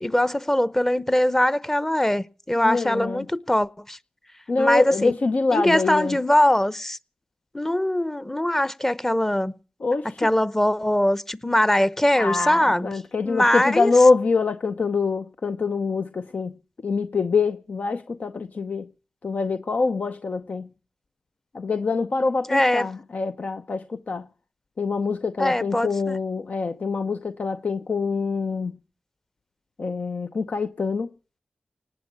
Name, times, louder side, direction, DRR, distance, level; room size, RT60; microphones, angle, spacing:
voice 1, 0.0-4.0 4.6-5.1 5.5-7.0 7.5-9.6 10.2-12.9 13.2-13.9 22.5-22.9 25.4-26.2, left 1 dB, 15° left, 0.8 m, -22 dB
voice 2, 2.6-3.3 4.5-6.2 9.8-10.3 12.1-16.6 16.8-18.9 19.2-20.7 21.5-24.3 24.8-28.8 29.8-31.1, left 4 dB, 65° left, 0.7 m, -24 dB
19.0 x 8.0 x 8.5 m
cardioid pair, 50°, 3 cm